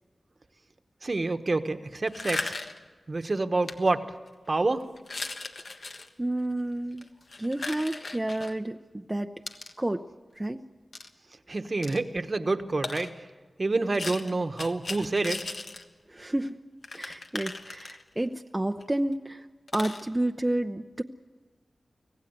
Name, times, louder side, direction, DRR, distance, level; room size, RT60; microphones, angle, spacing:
voice 1, 1.0-2.5 3.1-4.1 4.5-4.9 11.5-13.3 13.6-15.4, right 2 dB, 45° right, 9 dB, 1.2 m, -28 dB
sound 1, 2.1-2.9 3.6-3.7 4.3-4.5 5.0-6.1 6.9-8.5 9.5-9.7 10.9-11.1 11.8-12.0 12.8-13.1 13.9-15.8 16.2-16.3 16.5-16.6 16.8-18.3 18.8-18.9 19.1-19.2 19.7-20.0, left 3 dB, 70° left, 1.4 m, -37 dB
voice 2, 6.2-7.1 7.4-9.3 9.8-10.0 10.3-10.6 16.1-16.6 16.9-19.5 19.7-21.0, right 1 dB, 20° right, 5 dB, 0.6 m, -30 dB
25.5 x 16.5 x 8.0 m, 1.4 s
wide cardioid pair, 65°, 0 cm